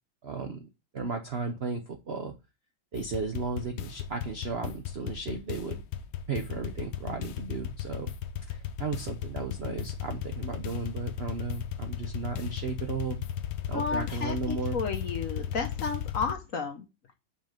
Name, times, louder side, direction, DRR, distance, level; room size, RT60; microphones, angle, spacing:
voice 1, 0.2-2.4 2.9-5.8 6.3-8.1 8.5-13.2 13.7-14.8, right 4 dB, 85° right, 0.5 m, -35 dB
sound 1, 2.9-16.3, left 10 dB, 80° left, 1.5 m, -36 dB
voice 2, 13.7-16.8, left 5 dB, 55° left, 1.0 m, -32 dB
5.6 x 5.0 x 5.1 m
omnidirectional pair, 2.3 m